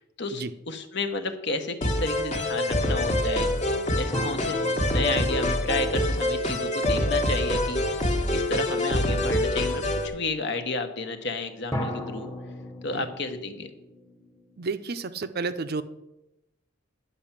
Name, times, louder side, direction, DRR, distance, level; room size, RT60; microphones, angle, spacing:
voice 1, 0.2-3.5 4.0-4.6 4.9-8.0 8.3-12.3 12.8-13.7, left 2 dB, 55° left, 8 dB, 1.1 m, -31 dB
sound 1, 1.8-10.1, left 1 dB, 35° left, 1.3 m, -25 dB
sound 2, 4.1-7.5 11.7-15.0, equal, 15° left, 1.4 m, -38 dB
voice 2, 14.6-15.8, right 4 dB, 50° right, 12 dB, 0.6 m, -31 dB
10.5 x 5.7 x 7.3 m, 0.90 s
head